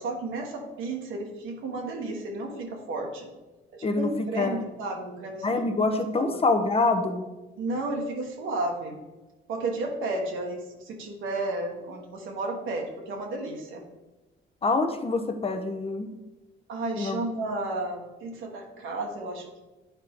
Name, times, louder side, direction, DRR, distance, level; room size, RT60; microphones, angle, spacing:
voice 1, 0.0-3.3 3.7-5.8 6.2-6.4 7.6-9.0 9.5-13.8 16.7-19.6, right 2 dB, 85° right, 1 dB, 1.4 m, -33 dB
voice 2, 4.4-4.7 5.4-7.2 14.6-16.2 17.0-17.2, left 3 dB, 30° left, 6 dB, 0.8 m, -25 dB
9.6 x 4.6 x 3.6 m, 1.1 s
cardioid pair, 90°, 20 cm